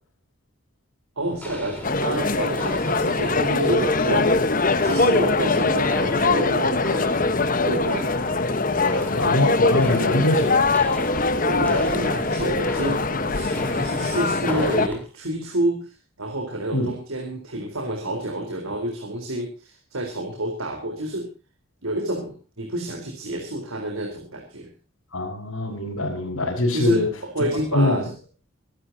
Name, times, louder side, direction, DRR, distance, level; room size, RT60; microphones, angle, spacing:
Walk footsteps, 1.2-15.0, left 1 dB, 10° left, 4.2 m, -36 dB
voice 1, 1.2-4.3 4.8-7.2 7.6-8.2 11.4-15.9 16.2-21.3 21.8-24.7 26.7-28.1, right 1 dB, 85° right, 3 dB, 4.1 m, -28 dB
sound 1, 1.8-14.9, left 3 dB, 40° left, 1.2 m, -22 dB
voice 2, 9.2-10.7 16.7-16.9 25.1-27.1 27.7-28.1, left 1 dB, 85° left, -4 dB, 5.3 m, -23 dB
24.5 x 12.5 x 2.8 m, 0.35 s
head